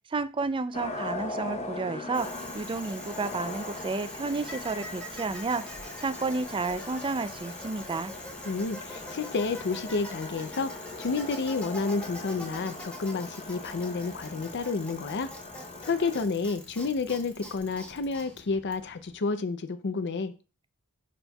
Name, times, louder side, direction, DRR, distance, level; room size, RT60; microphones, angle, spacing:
voice 1, 0.1-2.3 2.5-8.1, right 3 dB, 25° right, 0.4 m, -31 dB
sound 1, 0.7-16.2, left 2 dB, 30° left, 0.8 m, -40 dB
Bicycle, 2.1-19.2, left 1 dB, 5° left, 1.3 m, -44 dB
voice 2, 8.5-15.3 15.8-20.3, left 4 dB, 55° left, 0.5 m, -30 dB
11.0 x 4.3 x 2.3 m
head